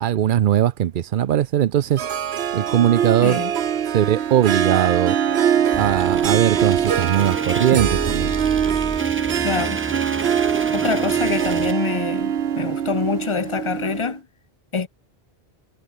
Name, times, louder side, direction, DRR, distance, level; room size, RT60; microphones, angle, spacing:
voice 1, 0.0-2.1 2.5-3.4 3.9-5.2 5.8-8.3, right 11 dB, 60° right, 0.7 m, -19 dB
Harp, 2.0-14.2, right 9 dB, 85° right, 1.1 m, -23 dB
sound 1, 5.7-11.7, right 2 dB, 15° right, 0.7 m, -31 dB
voice 2, 9.4-9.8 10.7-14.3 14.7-14.9, left 5 dB, 30° left, 0.9 m, -25 dB
omnidirectional pair, 1.1 m